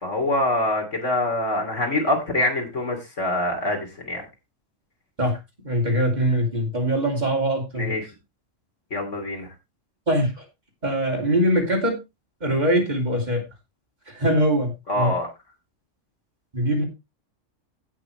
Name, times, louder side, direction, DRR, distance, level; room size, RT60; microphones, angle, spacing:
voice 1, 0.0-4.3 7.8-8.1 8.9-9.5 14.9-15.3, left 1 dB, 70° left, 2 dB, 3.3 m, -25 dB
voice 2, 5.6-7.9 10.1-10.4 10.8-12.0 12.4-13.4 14.1-15.1 16.5-16.8, equal, 35° right, 0 dB, 3.2 m, -22 dB
17.0 x 6.0 x 3.2 m, 0.24 s
omnidirectional pair, 1.3 m